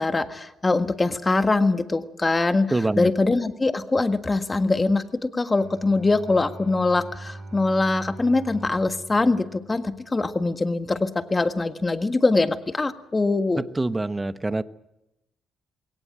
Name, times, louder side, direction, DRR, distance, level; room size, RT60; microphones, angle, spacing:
voice 1, 0.0-13.6, left 3 dB, 20° left, 9 dB, 1.7 m, -23 dB
voice 2, 2.7-3.1 13.6-14.6, right 2 dB, 15° right, 13 dB, 1.0 m, -25 dB
Bowed string instrument, 5.5-10.3, right 2 dB, 50° right, 5.9 m, -42 dB
22.0 x 18.0 x 9.0 m, 0.89 s
cardioid pair, 90°, 0 cm